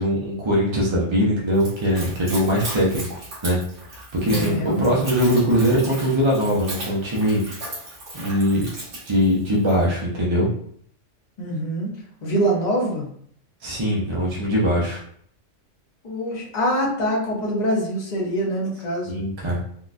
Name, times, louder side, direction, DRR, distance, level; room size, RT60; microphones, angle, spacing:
voice 1, 0.0-3.6 3.9-7.4 8.1-8.7 9.0-10.5 13.6-15.0 19.0-19.6, equal, 40° right, -4 dB, 0.4 m, -21 dB
Splash splatter / Trickle dribble, 1.5-9.9, right 1 dB, 70° right, 1.6 m, -36 dB
voice 2, 4.1-5.0 11.4-11.9 12.2-13.1 16.0-19.2, right 1 dB, 40° left, -3 dB, 0.8 m, -24 dB
3.7 x 2.2 x 2.5 m, 0.62 s
omnidirectional pair, 1.3 m